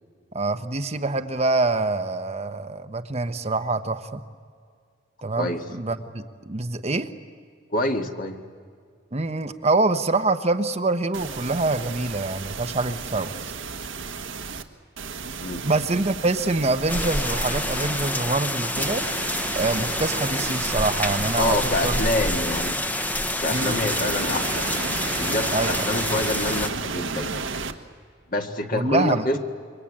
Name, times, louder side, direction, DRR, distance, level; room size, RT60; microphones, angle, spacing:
voice 1, 0.3-4.2 5.2-7.1 9.1-13.3 15.6-19.0 19.5-21.6 21.8-22.0 23.5-23.8 25.5-25.9 28.7-29.2, right 2 dB, 35° right, 8 dB, 0.9 m, -25 dB
voice 2, 7.7-8.4 15.4-15.7 21.3-22.8 23.4-24.7 25.2-27.5 28.3-29.4, left 2 dB, 45° left, 3 dB, 1.9 m, -26 dB
sound 1, 11.1-14.6 15.0-18.1 18.7-22.7 23.5-27.7, right 4 dB, 80° right, 1.4 m, -33 dB
sound 2, 16.9-26.7, left 1 dB, 10° left, 1.0 m, -27 dB
27.5 x 24.0 x 8.7 m, 2.1 s
head